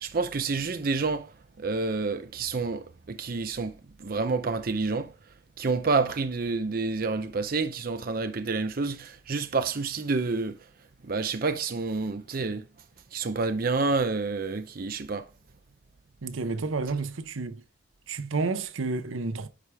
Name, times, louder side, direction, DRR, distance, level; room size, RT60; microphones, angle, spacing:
voice 1, 0.0-5.1 5.6-10.6 11.0-12.6 13.1-15.3, right 4 dB, 45° right, 0.6 m, -29 dB
voice 2, 16.2-17.6 18.1-19.5, right 3 dB, 85° right, 0.7 m, -30 dB
9.8 x 4.9 x 3.4 m
head